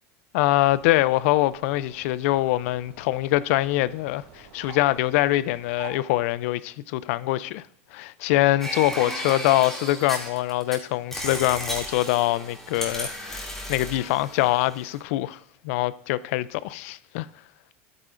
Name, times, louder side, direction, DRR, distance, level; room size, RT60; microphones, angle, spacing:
voice 1, 0.3-7.6 7.9-15.4 15.6-17.3, left 16 dB, 70° left, 0.4 m, -24 dB
sound 1, 0.6-5.9, right 7 dB, 80° right, 4.2 m, -48 dB
sound 2, 8.6-10.7 11.1-15.0, equal, 5° left, 2.4 m, -34 dB
12.0 x 9.1 x 2.5 m
supercardioid pair, 130°, 8 cm